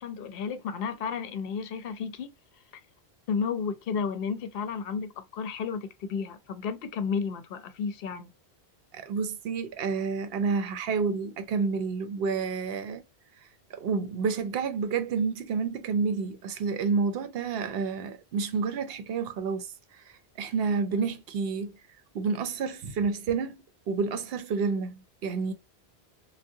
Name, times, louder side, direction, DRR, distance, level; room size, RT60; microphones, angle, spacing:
voice 1, 0.0-2.3 3.3-8.3, left 6 dB, 65° left, 0.7 m, -32 dB
voice 2, 8.9-13.0 13.8-19.7 19.9-20.0 20.4-21.7 22.1-23.6 23.9-25.5, right 5 dB, 70° right, 0.7 m, -29 dB
3.5 x 2.1 x 2.6 m
omnidirectional pair, 1.1 m